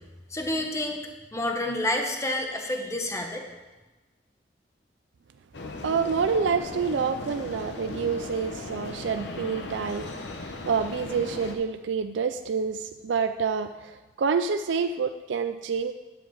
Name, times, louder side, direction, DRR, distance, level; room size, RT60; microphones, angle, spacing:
voice 1, 0.3-1.0 1.3-3.4, left 1 dB, 15° left, 3 dB, 1.0 m, -29 dB
sound 1, 5.5-11.6, left 2 dB, 75° left, 0.9 m, -37 dB
voice 2, 5.8-15.9, right 5 dB, 90° right, 9 dB, 0.4 m, -28 dB
10.5 x 4.6 x 7.3 m, 1.2 s
head